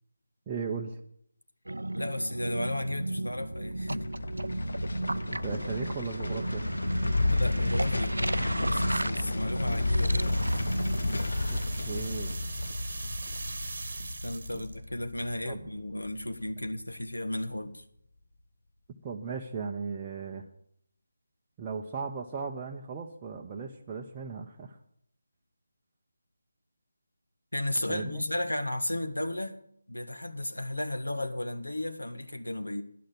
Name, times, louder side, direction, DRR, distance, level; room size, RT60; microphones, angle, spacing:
voice 1, 0.5-1.0 5.2-6.7 11.5-11.6 11.8-12.3 14.5-14.6 15.4-15.7 19.0-20.4 21.6-24.8 27.9-28.2, right 5 dB, 20° right, 0.7 m, -37 dB
sound 1, 1.7-11.2, right 2 dB, 75° right, 0.4 m, -34 dB
voice 2, 1.9-4.1 7.3-10.4 14.0-17.8 27.5-29.6 29.9-32.8, left 1 dB, 80° left, 1.4 m, -34 dB
sound 2, 3.4-16.6 16.9-17.0, left 2 dB, 65° left, 1.1 m, -32 dB
sound 3, 9.3-14.8, right 3 dB, 50° right, 1.1 m, -42 dB
11.0 x 6.5 x 9.2 m
figure-of-eight pair, 155°, 0 cm